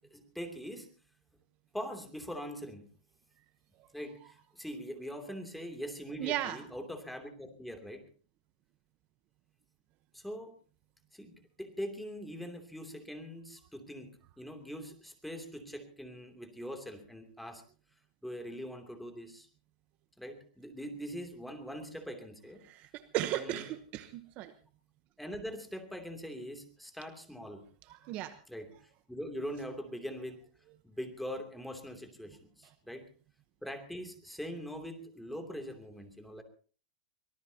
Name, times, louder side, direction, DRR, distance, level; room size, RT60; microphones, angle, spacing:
voice 1, 0.1-0.9 1.7-2.9 3.9-8.0 10.1-10.5 11.1-17.6 18.2-19.5 20.2-22.6 23.3-23.6 25.2-27.7 28.5-30.4 30.8-33.1 33.6-36.4, equal, ahead, 5 dB, 2.9 m, -42 dB
voice 2, 6.2-6.6 22.6-24.5 27.9-28.4, right 14 dB, 40° right, 11 dB, 1.0 m, -36 dB
24.0 x 18.5 x 2.9 m, 0.40 s
hypercardioid pair, 140°, 4 cm